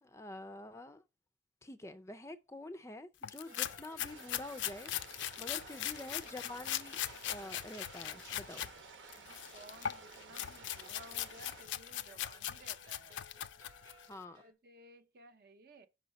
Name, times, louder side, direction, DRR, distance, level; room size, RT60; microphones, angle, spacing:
voice 1, 0.0-1.0 1.6-4.9 5.4-7.0 7.3-8.6 14.1-14.4, left 2 dB, 15° left, 0.4 m, -47 dB
sound 1, 3.2-8.7 9.1-14.1, left 11 dB, 80° left, 0.4 m, -40 dB
sound 2, 3.5-14.5, right 2 dB, 20° right, 0.9 m, -62 dB
sound 3, 4.1-11.6, right 5 dB, 80° right, 1.0 m, -54 dB
voice 2, 5.5-5.8 9.1-13.2 14.4-15.9, right 1 dB, 55° right, 0.7 m, -57 dB
5.6 x 4.0 x 5.2 m
head